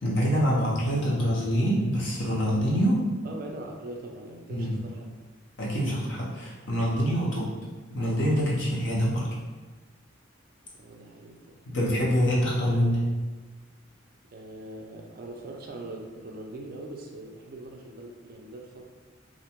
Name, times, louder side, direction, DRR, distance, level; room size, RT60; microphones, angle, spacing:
voice 1, 0.0-3.0 4.5-4.8 5.6-7.5 7.9-9.3 11.7-13.0, equal, 60° left, -4 dB, 0.7 m, -25 dB
voice 2, 3.2-5.1 10.7-12.3 14.3-18.8, right 2 dB, 45° right, 1 dB, 0.3 m, -42 dB
2.4 x 2.1 x 2.9 m, 1.3 s
head